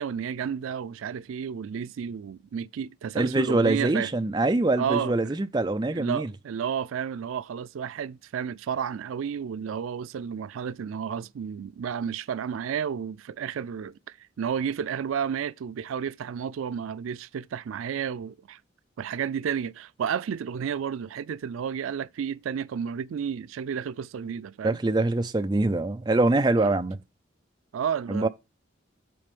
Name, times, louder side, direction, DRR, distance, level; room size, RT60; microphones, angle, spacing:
voice 1, 0.0-4.1 4.8-5.3 5.9-18.6 19.0-24.8 26.6-26.8 27.7-28.3, right 7 dB, 85° right, 0.4 m, -32 dB
voice 2, 3.1-6.3 24.6-27.0 28.1-28.3, right 2 dB, 20° right, 0.4 m, -24 dB
7.7 x 4.1 x 5.1 m
head